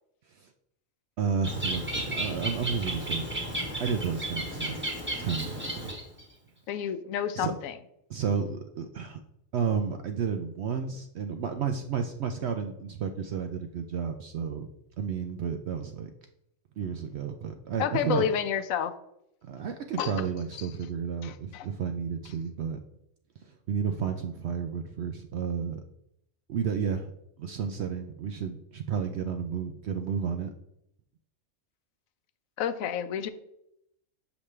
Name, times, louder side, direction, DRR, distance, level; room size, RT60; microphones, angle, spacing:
voice 1, 1.2-3.3 3.8-4.8 5.2-5.9 7.3-7.5 8.1-9.2 9.5-14.7 15.0-16.1 16.8-18.3 19.4-22.8 23.4-25.8 26.5-27.1 27.4-30.5, right 6 dB, 65° right, 6 dB, 0.7 m, -32 dB
Bird, 1.4-6.2, right 1 dB, 10° right, 1.2 m, -33 dB
voice 2, 6.7-7.7 17.8-18.9 20.0-20.1 21.2-21.7 32.6-33.3, left 8 dB, 90° left, 12 dB, 1.0 m, -29 dB
7.0 x 5.2 x 3.2 m, 0.78 s
omnidirectional pair, 1.4 m